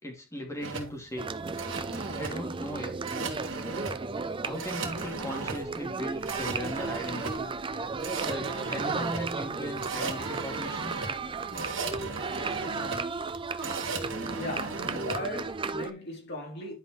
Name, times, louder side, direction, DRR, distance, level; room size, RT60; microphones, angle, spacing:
voice 1, 0.0-1.3 2.2-3.0 4.4-7.5 8.2-10.9, equal, 15° left, 2.5 m, -38 dB
sound 1, 0.6-15.2, right 4 dB, 70° right, 2.0 m, -37 dB
sound 2, 1.2-15.9, right 4 dB, 25° right, 0.6 m, -35 dB
voice 2, 14.4-16.8, left 1 dB, 55° left, 3.7 m, -37 dB
10.5 x 5.3 x 3.2 m
head